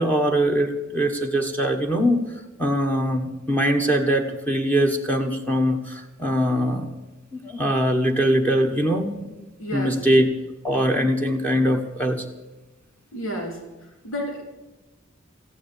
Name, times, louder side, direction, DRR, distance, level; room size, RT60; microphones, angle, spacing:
voice 1, 0.0-2.2 2.6-6.9 7.3-9.3 9.7-10.3 10.6-12.2, equal, 10° left, 1 dB, 1.3 m, -22 dB
voice 2, 9.6-10.2 13.1-13.6 14.0-14.4, equal, 85° left, 2 dB, 3.3 m, -31 dB
15.0 x 9.9 x 8.4 m, 1.0 s
head